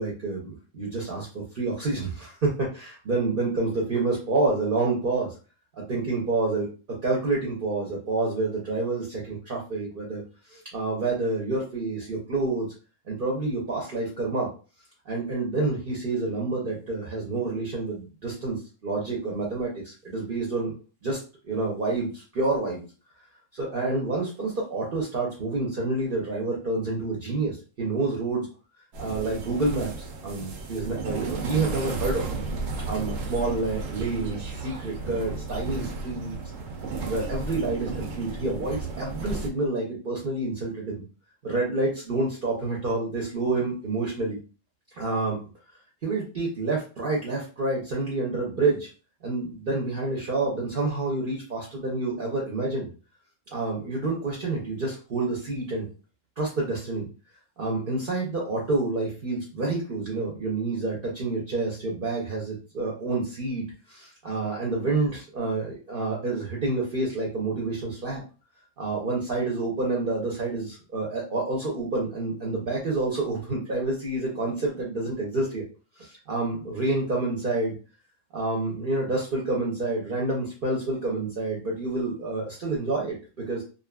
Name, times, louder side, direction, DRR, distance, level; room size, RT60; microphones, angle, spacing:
voice 1, 0.0-5.4 5.9-10.2 10.5-12.7 13.1-14.5 15.1-20.7 21.0-22.9 23.5-28.5 29.0-32.3 32.8-36.4 37.0-41.0 41.4-44.4 44.9-45.4 46.0-48.9 49.2-52.9 53.5-55.9 56.4-57.1 57.6-68.2 68.8-75.6 76.0-77.7 78.3-83.6, right 3 dB, 50° right, -3 dB, 0.8 m, -28 dB
sound 1, 28.9-39.5, right 3 dB, 80° right, 1.0 m, -34 dB
2.6 x 2.5 x 2.2 m, 0.35 s
omnidirectional pair, 1.3 m